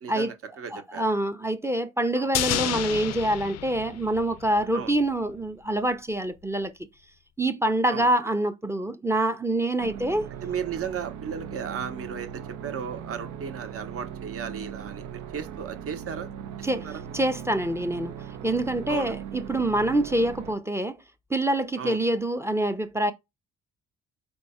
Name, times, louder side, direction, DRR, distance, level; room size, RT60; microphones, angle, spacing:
voice 1, 0.0-1.0 2.2-2.3 4.7-4.9 7.9-8.1 10.4-12.3 12.6-16.3 16.6-17.0 18.9-19.1 21.8-22.0, right 7 dB, 50° right, 0.9 m, -35 dB
voice 2, 0.7-6.7 7.4-10.3 16.6-16.9 17.1-18.1 18.4-21.0 21.3-23.1, right 1 dB, 10° right, 0.5 m, -26 dB
sound 1, 2.3-4.7 5.0-5.1, left 12 dB, 60° left, 0.4 m, -30 dB
sound 2, 9.8-20.5, right 9 dB, 85° right, 0.7 m, -39 dB
4.5 x 2.3 x 4.1 m
cardioid pair, 90°, 30 cm